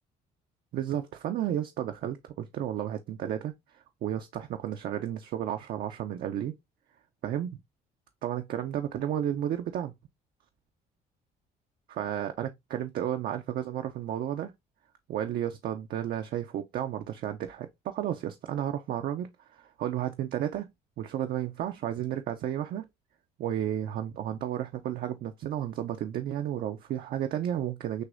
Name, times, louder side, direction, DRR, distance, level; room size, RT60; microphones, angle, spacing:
voice 1, 0.7-3.5 4.0-6.5 7.2-7.6 8.2-9.9 11.9-14.5 15.1-20.7 21.0-22.8 23.4-28.0, right 11 dB, 65° right, 0.6 m, -32 dB
6.4 x 2.7 x 2.5 m
cardioid pair, 110°, 17 cm